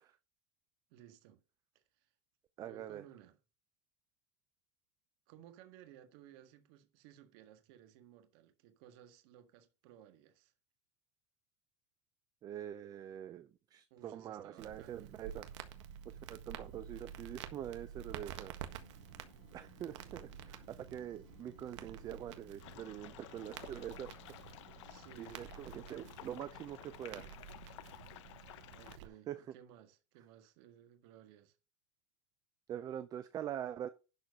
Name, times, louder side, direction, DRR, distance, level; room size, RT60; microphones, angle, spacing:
voice 1, 0.9-1.4 1.7-2.1 2.6-3.4 5.3-10.5 13.9-15.1 21.0-21.2 24.8-25.4 28.7-31.6, right 10 dB, 55° right, 1.8 m, -59 dB
voice 2, 2.6-3.0 12.4-15.5 16.1-18.5 19.5-24.1 24.5-24.6 25.2-27.3 29.3-29.4 32.7-33.9, right 10 dB, 25° right, 0.5 m, -44 dB
Crackle, 14.6-29.1, right 10 dB, 75° right, 1.6 m, -50 dB
sound 1, 18.6-25.5, left 12 dB, 55° left, 2.0 m, -64 dB
sound 2, 22.6-29.0, left 15 dB, 75° left, 0.9 m, -54 dB
11.5 x 4.6 x 6.5 m
supercardioid pair, 155°, 15 cm